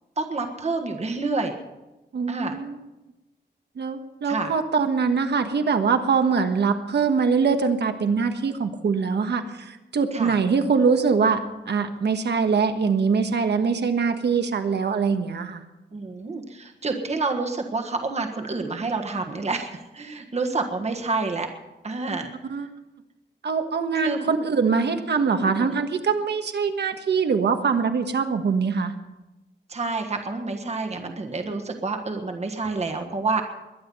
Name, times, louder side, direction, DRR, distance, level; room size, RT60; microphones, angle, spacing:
voice 1, 0.2-1.6 2.3-2.6 4.2-4.5 10.1-10.3 15.9-21.5 21.8-22.3 22.6-22.7 23.9-24.3 25.3-25.7 29.7-33.4, right 3 dB, 35° right, 4 dB, 1.4 m, -28 dB
voice 2, 2.1-2.8 3.8-15.6 22.5-22.7 23.4-28.9, right 5 dB, 70° right, 7 dB, 1.4 m, -23 dB
22.0 x 10.0 x 5.5 m, 1.0 s
wide cardioid pair, 155°, 18 cm